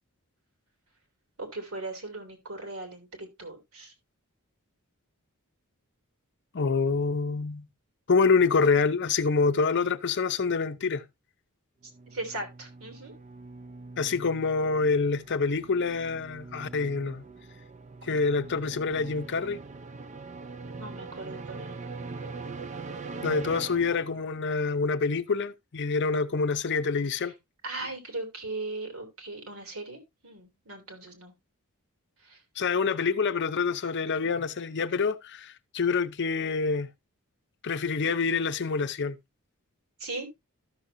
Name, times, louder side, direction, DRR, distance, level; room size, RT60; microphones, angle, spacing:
voice 1, 1.4-3.9 12.1-13.1 18.0-18.2 20.7-21.7 27.2-27.3 27.6-31.3 32.2-32.4 40.0-40.3, right 2 dB, 65° right, 2.9 m, -38 dB
voice 2, 6.5-7.7 8.1-11.0 14.0-17.2 18.1-19.6 23.2-27.3 32.6-36.9 37.6-39.2, left 4 dB, 55° left, 0.6 m, -26 dB
sound 1, 11.8-24.5, right 3 dB, 30° right, 0.5 m, -42 dB
13.0 x 6.4 x 2.6 m
head